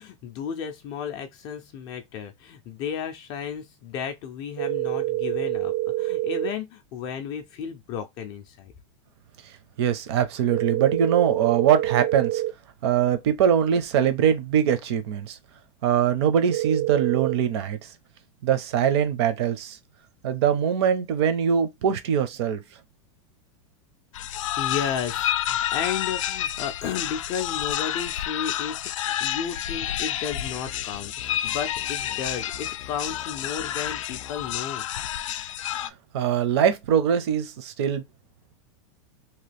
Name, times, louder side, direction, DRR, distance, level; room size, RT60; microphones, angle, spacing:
voice 1, 0.0-8.7 24.3-34.9, left 7 dB, 25° left, 0.4 m, -33 dB
sound 1, 4.6-6.5 10.5-12.5 16.5-17.3, right 15 dB, 90° right, 0.9 m, -26 dB
voice 2, 9.8-12.4 12.8-15.4 15.8-17.8 18.4-19.8 20.2-22.6 35.8-38.0, right 8 dB, 55° right, 0.7 m, -22 dB
sound 2, 24.1-35.9, left 11 dB, 90° left, 0.4 m, -29 dB
2.9 x 2.3 x 3.2 m
supercardioid pair, 165°, 16 cm